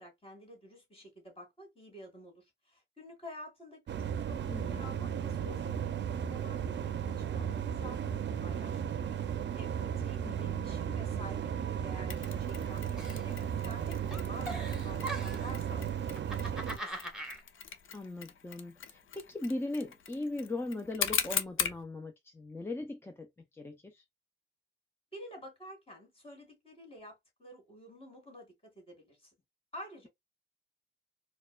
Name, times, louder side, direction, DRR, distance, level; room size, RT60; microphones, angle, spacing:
voice 1, 0.0-9.1 9.5-17.0 25.1-29.3 29.7-30.1, equal, 30° left, 2.2 m, -50 dB
sound 1, 3.9-16.8, right 9 dB, 65° right, 0.5 m, -35 dB
voice 2, 4.5-5.0 10.2-10.7 17.9-24.0, left 2 dB, 10° left, 0.4 m, -39 dB
Mechanisms, 12.1-21.8, left 7 dB, 80° left, 0.6 m, -40 dB
Giggle, 13.0-13.8 14.1-15.6 16.1-17.4, right 1 dB, 5° right, 1.1 m, -41 dB
4.4 x 2.2 x 2.2 m
wide cardioid pair, 145°, 20 cm